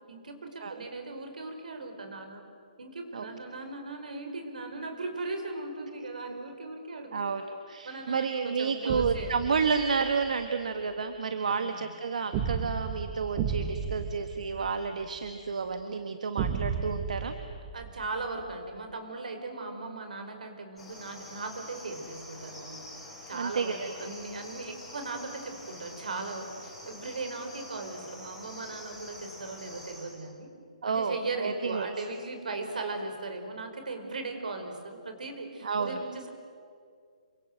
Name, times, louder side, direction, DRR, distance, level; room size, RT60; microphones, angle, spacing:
voice 1, 0.1-2.4 2.8-7.3 7.8-9.6 11.5-11.9 17.7-22.8 23.3-30.5 30.9-36.3, right 3 dB, 85° right, 5 dB, 5.2 m, -38 dB
voice 2, 7.1-17.4 23.3-24.1 30.8-31.9 35.6-36.0, right 5 dB, 70° right, 8 dB, 1.6 m, -31 dB
sound 1, 8.9-10.3 12.3-15.3 16.4-18.5, right 6 dB, 20° right, 1.0 m, -34 dB
Cricket, 20.8-30.2, left 1 dB, 5° left, 6.9 m, -46 dB
28.0 x 24.5 x 7.8 m, 2.2 s
hypercardioid pair, 170°, 4 cm